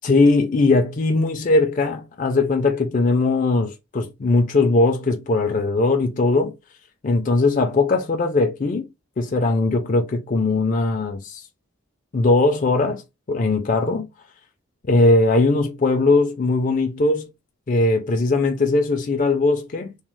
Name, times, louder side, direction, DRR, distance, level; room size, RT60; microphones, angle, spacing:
voice 1, 0.0-6.5 7.0-8.8 9.2-11.4 12.1-13.0 13.3-14.1 14.9-17.3 17.7-20.0, left 3 dB, 40° left, 0.4 m, -19 dB
3.0 x 2.0 x 3.0 m
head